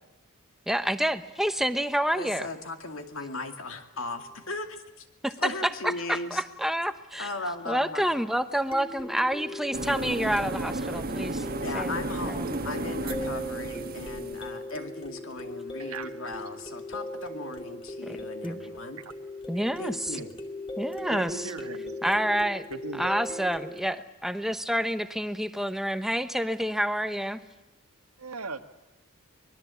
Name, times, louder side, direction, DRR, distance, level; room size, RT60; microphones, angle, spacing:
voice 1, 0.7-2.5 5.2-7.3 7.7-11.5 11.7-12.0 12.2-12.6 18.0-18.2 18.4-18.6 19.5-20.2 20.8-21.5 22.0-22.7 22.9-27.4, equal, ahead, 10 dB, 0.9 m, -28 dB
voice 2, 2.1-5.1 5.4-6.4 7.2-8.1 11.6-19.0 19.8-20.3, left 2 dB, 60° left, 6 dB, 2.4 m, -37 dB
sound 1, 8.7-23.8, left 1 dB, 25° left, 2.4 m, -39 dB
sound 2, 9.7-14.5, right 2 dB, 40° right, 1.4 m, -33 dB
voice 3, 21.1-22.0 22.7-23.2 28.2-28.6, right 3 dB, 85° right, 8 dB, 1.6 m, -38 dB
25.0 x 21.0 x 8.4 m, 1.0 s
head